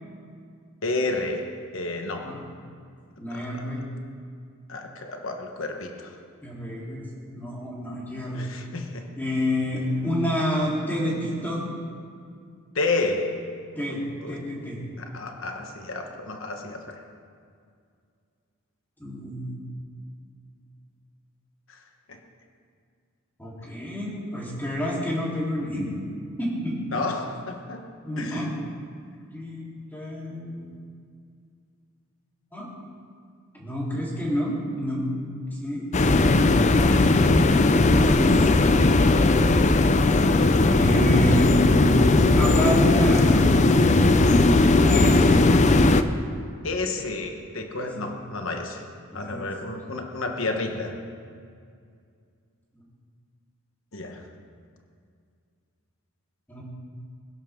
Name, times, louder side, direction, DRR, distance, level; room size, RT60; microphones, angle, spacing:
voice 1, 0.8-2.4 3.3-3.6 4.7-6.1 8.4-9.1 12.7-13.5 13.9-14.4 15.0-17.0 21.7-21.8 22.1-22.2 26.9-27.9 28.2-28.5 46.6-48.8 49.1-51.0 53.9-54.2, left 3 dB, 65° left, 4 dB, 1.2 m, -31 dB
voice 2, 3.2-3.8 6.4-7.1 7.3-8.5 9.2-11.6 13.8-14.0 14.3-14.8 19.0-19.6 23.4-26.0 26.4-27.0 28.0-28.5 29.3-29.7 29.9-30.7 32.5-32.7 33.5-35.0 35.6-37.6 37.9-38.8 40.7-41.8 42.3-43.9 44.7-45.4 47.7-47.9 49.1-49.5 56.5-56.6, equal, 10° left, -6 dB, 3.7 m, -29 dB
sound 1, 35.9-46.0, left 2 dB, 35° left, 0.5 m, -18 dB
22.5 x 11.0 x 3.8 m, 2.3 s
head